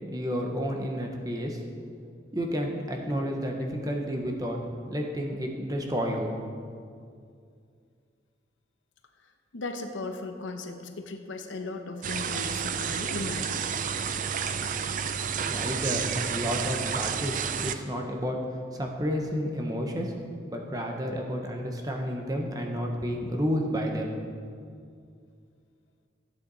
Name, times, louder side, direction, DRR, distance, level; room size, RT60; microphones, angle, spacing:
voice 1, 0.1-1.6 2.3-4.6 4.9-6.5 15.3-20.1 20.5-24.2, equal, 20° right, 1 dB, 1.0 m, -31 dB
voice 2, 9.5-13.6, left 3 dB, 85° left, 6 dB, 0.9 m, -36 dB
sound 1, 12.0-17.8, right 7 dB, 40° right, 0.4 m, -30 dB
13.0 x 8.5 x 4.0 m, 2.3 s
head